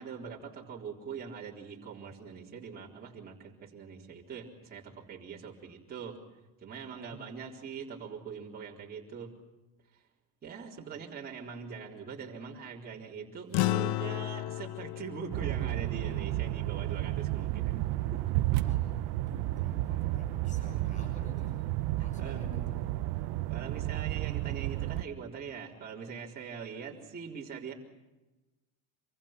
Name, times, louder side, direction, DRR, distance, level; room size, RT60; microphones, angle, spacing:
voice 1, 0.0-6.2 6.6-9.4 9.9-10.0 10.4-17.9 18.1-18.4 22.0-22.5 23.5-27.7, right 6 dB, 25° right, -3 dB, 4.0 m, -43 dB
sound 1, 13.5-18.2, left 18 dB, 65° left, 0.8 m, -35 dB
sound 2, 15.3-25.0, right 16 dB, 65° right, 1.0 m, -32 dB
voice 2, 18.6-19.0 19.3-21.6 21.9-22.7, right 1 dB, 20° left, 3 dB, 6.7 m, -48 dB
27.0 x 24.5 x 6.0 m, 1.1 s
cardioid pair, 165°, 40 cm